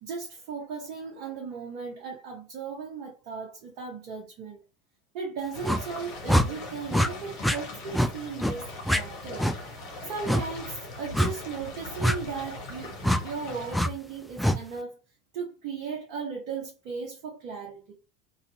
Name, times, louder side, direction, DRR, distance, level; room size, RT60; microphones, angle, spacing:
voice 1, 0.0-4.6 5.1-9.5 10.0-15.0 15.3-17.9, right 5 dB, 60° right, 0.8 m, -37 dB
sound 1, 5.5-13.8, left 2 dB, 65° left, 0.9 m, -40 dB
sound 2, 5.6-5.8 6.3-6.5 6.9-7.1 7.4-7.6 7.9-8.1 8.4-8.6 8.9-9.0 9.4-9.6 10.3-10.4 11.1-11.3 12.0-12.2 13.0-13.2 13.7-13.9 14.4-14.6, equal, 5° left, 0.3 m, -23 dB
2.6 x 2.4 x 2.7 m
hypercardioid pair, 75°, 0 cm